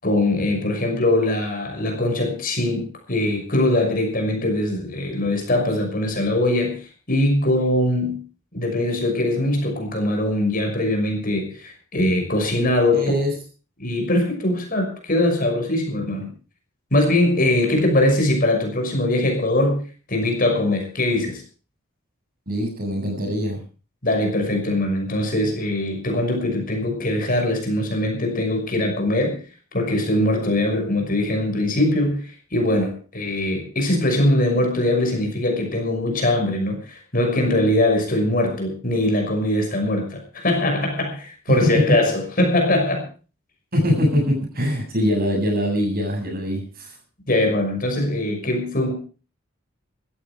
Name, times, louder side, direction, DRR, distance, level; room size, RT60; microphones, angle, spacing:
voice 1, 0.0-8.2 8.5-13.1 13.8-16.3 16.9-19.8 20.1-21.4 24.0-29.4 29.7-43.1 47.3-48.9, left 1 dB, 40° left, 3 dB, 6.0 m, -22 dB
voice 2, 12.9-13.3 22.5-23.6 41.5-41.7 43.7-46.9, equal, 45° right, 2 dB, 7.4 m, -22 dB
16.0 x 14.0 x 5.0 m, 0.37 s
head